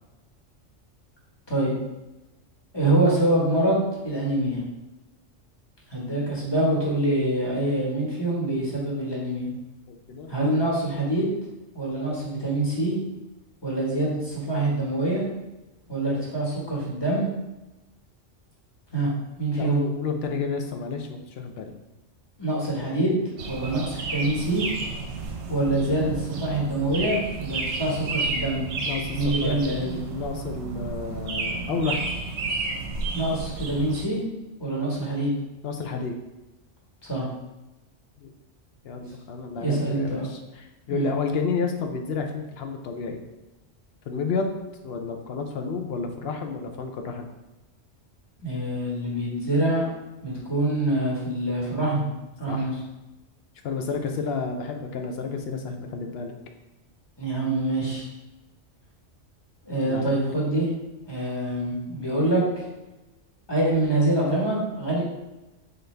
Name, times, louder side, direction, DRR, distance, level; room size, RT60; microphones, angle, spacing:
voice 1, 2.7-4.6 5.9-9.5 10.3-11.3 11.7-12.9 13.6-15.2 15.9-17.3 18.9-19.1 19.4-19.8 22.4-23.2 23.5-24.6 25.5-28.6 29.1-29.9 33.1-34.2 34.6-35.3 37.0-37.2 39.6-40.2 40.9-41.1 48.4-49.8 50.2-52.0 52.4-52.7 57.2-58.1 59.6-60.7 61.0-62.7 63.5-65.0, right 1 dB, 20° left, -5 dB, 1.3 m, -25 dB
voice 2, 9.9-10.3 19.6-21.7 28.9-32.0 35.6-36.2 38.2-38.3 38.8-43.2 44.1-44.5 44.8-47.3 52.5-52.7 53.6-56.4 59.8-60.2, left 5 dB, 60° left, 4 dB, 0.7 m, -31 dB
sound 1, 23.4-34.0, right 3 dB, 65° right, 0.9 m, -31 dB
4.0 x 3.9 x 3.3 m, 1.0 s
omnidirectional pair, 1.3 m